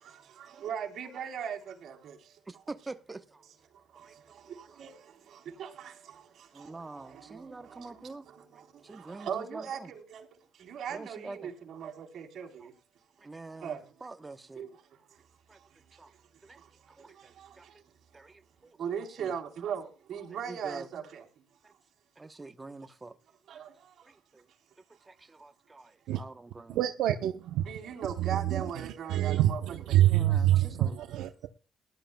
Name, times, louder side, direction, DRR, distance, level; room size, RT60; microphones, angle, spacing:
voice 1, 0.0-2.4 3.9-10.3 10.5-12.7 13.5-14.0 14.5-15.2 15.5-16.2 16.5-17.9 18.8-21.5 23.5-24.2 27.7-29.6 29.9-30.3, right 8 dB, 65° right, 3.8 m, -40 dB
voice 2, 2.5-3.4 4.0-4.2 4.7-4.8 6.5-8.3 8.8-9.9 10.9-11.5 12.6-12.7 13.2-14.7 15.5-15.6 16.0-16.1 16.4-16.6 17.0-17.7 18.1-18.8 19.2-19.3 20.4-20.9 21.6-21.7 22.2-23.2 24.0-24.5 25.1-26.8 30.1-30.9, right 3 dB, 20° right, 0.9 m, -46 dB
voice 3, 26.7-27.6 28.2-31.5, right 13 dB, 90° right, 0.8 m, -26 dB
19.5 x 11.5 x 2.3 m
cardioid pair, 90°, 0 cm